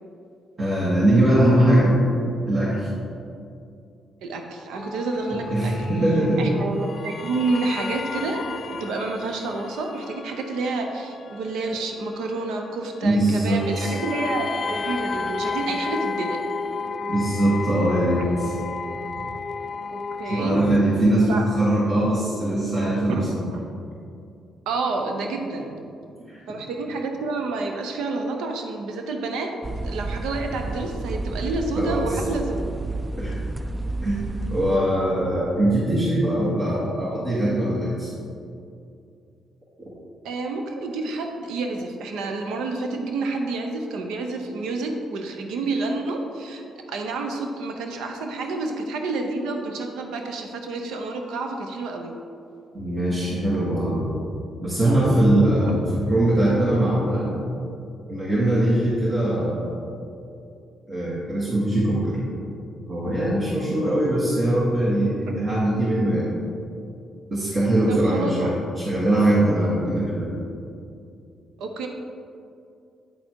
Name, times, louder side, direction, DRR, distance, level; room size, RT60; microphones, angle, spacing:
voice 1, 0.6-2.0 2.5-2.9 5.3-6.5 13.0-14.0 17.1-18.5 20.2-23.4 26.3-26.4 31.8-32.2 33.1-33.4 34.0-38.1 52.7-54.1 54.6-57.3 58.1-59.8 60.9-62.2 62.9-66.3 67.3-70.3, right 1 dB, 45° right, -9 dB, 1.9 m, -21 dB
voice 2, 4.2-5.7 6.4-16.4 18.2-18.3 19.9-20.6 21.3-21.5 23.1-23.2 23.5-23.6 24.7-25.7 26.5-29.5 29.8-32.7 40.2-52.1 55.5-55.6 67.9-68.5 71.6-71.9, right 3 dB, 85° right, 3 dB, 0.7 m, -29 dB
sound 1, 4.7-20.8, left 4 dB, 45° left, 0.4 m, -33 dB
sound 2, 29.6-34.8, right 2 dB, 20° right, 0.4 m, -30 dB
9.1 x 4.2 x 4.6 m, 2.5 s
cardioid pair, 75°, 0 cm